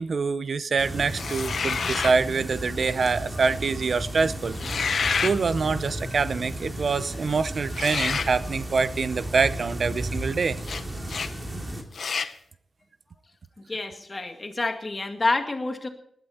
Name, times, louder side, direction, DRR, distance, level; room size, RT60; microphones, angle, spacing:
voice 1, 0.0-4.6 4.8-4.9 5.2-10.6, right 4 dB, 60° right, 0.7 m, -25 dB
sound 1, 0.8-11.8, right 1 dB, 25° right, 2.8 m, -34 dB
sound 2, 1.1-2.2 4.5-5.4 7.7-8.3 10.6-10.8 11.1-11.3 11.9-12.3, left 5 dB, 70° left, 0.8 m, -28 dB
voice 2, 13.6-15.9, left 2 dB, 35° left, 2.1 m, -28 dB
20.0 x 11.5 x 4.4 m
cardioid pair, 75°, 0 cm